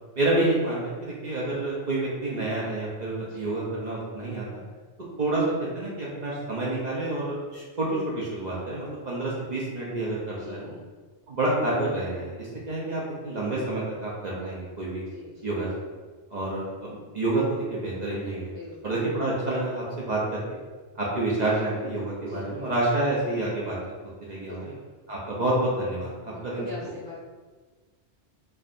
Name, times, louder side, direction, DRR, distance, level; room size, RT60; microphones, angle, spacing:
voice 1, 0.2-4.4 5.2-5.4 5.7-10.7 11.3-15.0 15.4-15.7 16.3-18.5 18.8-20.4 20.9-23.8 24.3-24.7 25.1-26.9, right 2 dB, 45° right, -5 dB, 0.7 m, -28 dB
voice 2, 3.2-3.6 8.6-9.1 10.3-10.7 15.1-15.5 18.4-18.8 22.2-22.7 24.4-24.9 26.2-27.2, left 3 dB, 30° left, -8 dB, 0.6 m, -43 dB
4.6 x 2.5 x 2.5 m, 1.4 s
omnidirectional pair, 1.2 m